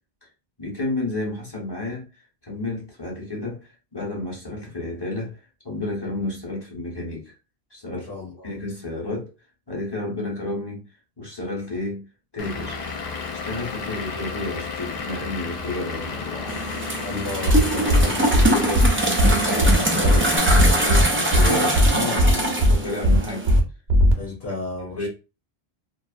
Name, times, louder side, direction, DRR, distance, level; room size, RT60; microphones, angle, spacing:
voice 1, 0.6-7.3 7.7-9.3 9.7-10.8 11.2-12.0 12.3-12.8 13.3-16.6 17.1-23.5 24.8-25.1, left 2 dB, 25° left, 1.0 m, -31 dB
voice 2, 7.9-8.5 17.0-18.5 24.2-25.1, left 2 dB, 75° left, 1.1 m, -34 dB
Vehicle / Engine, 12.4-20.4, left 5 dB, 55° left, 0.5 m, -32 dB
sound 1, 16.5-23.6, right 1 dB, 20° right, 0.4 m, -23 dB
sound 2, 17.5-17.6 17.9-18.0 18.3-18.5 18.7-18.9 19.2-19.3 19.6-19.7 20.0-20.2 20.5-21.0 21.3-21.5 21.7-21.9 22.2-22.3 22.6-22.7 23.0-23.2 23.5-23.6 23.9-24.1, equal, 80° right, 1.0 m, -16 dB
2.6 x 2.5 x 2.4 m
omnidirectional pair, 1.0 m